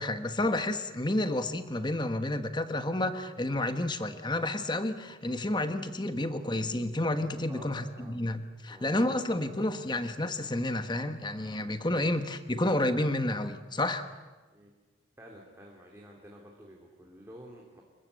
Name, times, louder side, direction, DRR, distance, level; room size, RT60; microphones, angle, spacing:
voice 1, 0.0-14.1, left 1 dB, 20° left, 9 dB, 1.3 m, -30 dB
voice 2, 7.5-8.2 8.7-10.0 14.5-14.7 15.2-17.8, equal, 15° right, -1 dB, 3.0 m, -51 dB
27.0 x 22.5 x 8.3 m, 1.3 s
head